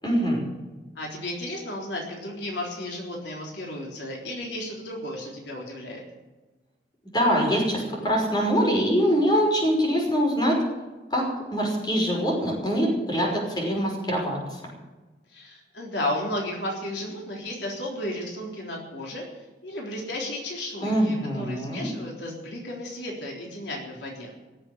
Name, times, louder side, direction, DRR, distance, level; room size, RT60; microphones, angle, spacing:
voice 1, 0.0-0.4 7.1-10.6 11.1-11.2 11.5-14.6 20.8-21.9, equal, 25° left, -2 dB, 5.7 m, -24 dB
voice 2, 1.0-6.0 15.3-24.3, left 1 dB, 80° left, -2 dB, 3.8 m, -34 dB
17.5 x 7.9 x 9.6 m, 1.2 s
head